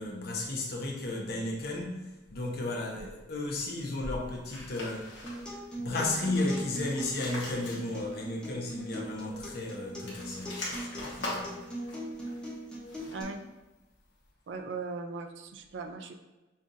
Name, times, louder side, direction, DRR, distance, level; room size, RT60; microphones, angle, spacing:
voice 1, 0.0-5.1 5.8-11.6, left 2 dB, 55° left, -1 dB, 0.8 m, -34 dB
sound 1, 4.5-5.6 6.0-8.3 8.5-8.6 9.9-13.4, left 2 dB, 75° left, 1.1 m, -42 dB
Acoustic guitar, 5.2-13.2, equal, 5° left, 0.7 m, -41 dB
voice 2, 14.5-16.1, right 4 dB, 70° right, 7 dB, 0.4 m, -39 dB
5.3 x 2.4 x 2.6 m, 1.1 s
head